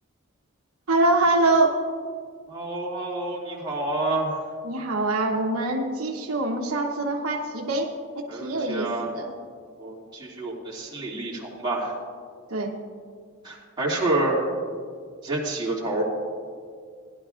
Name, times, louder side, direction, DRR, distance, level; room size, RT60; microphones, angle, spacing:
voice 1, 0.9-1.8 4.6-7.9 8.2-9.3 12.5-12.7, right 2 dB, 75° right, 0 dB, 1.0 m, -24 dB
voice 2, 2.5-4.4 8.3-9.2 9.8-11.9 13.4-14.4 15.2-16.0, right 2 dB, 20° right, -6 dB, 2.5 m, -28 dB
18.0 x 11.5 x 2.5 m, 2.1 s
head